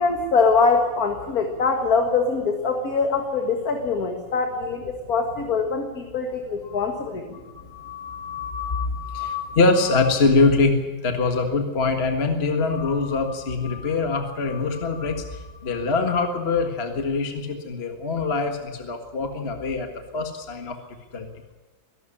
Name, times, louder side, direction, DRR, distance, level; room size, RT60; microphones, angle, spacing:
voice 1, 0.0-7.3, left 4 dB, 50° left, 4 dB, 2.2 m, -23 dB
voice 2, 7.3-20.8 21.1-21.3, left 3 dB, 35° left, 5 dB, 1.8 m, -24 dB
23.0 x 12.0 x 9.9 m, 1.3 s
omnidirectional pair, 2.1 m